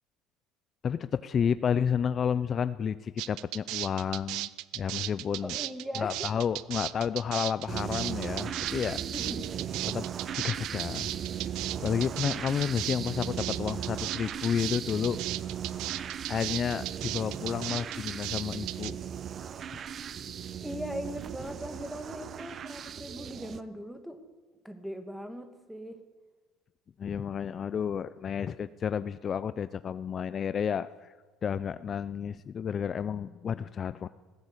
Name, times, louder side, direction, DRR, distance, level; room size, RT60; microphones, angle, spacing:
voice 1, 0.8-4.5 4.7-5.6 6.0-9.0 9.9-10.1 10.4-11.1 11.4-11.5 11.8-15.5 16.3-19.0 27.0-31.2 31.4-34.1, left 7 dB, 40° left, 14 dB, 0.5 m, -31 dB
sound 1, 3.2-18.9, right 17 dB, 75° right, 0.6 m, -36 dB
voice 2, 5.4-6.3 9.0-9.6 20.6-24.2 24.6-26.0, equal, ahead, 8 dB, 2.2 m, -39 dB
sound 2, 7.7-23.6, right 8 dB, 45° right, 0.9 m, -37 dB
20.5 x 16.0 x 8.2 m, 1.3 s
cardioid pair, 115°, 0 cm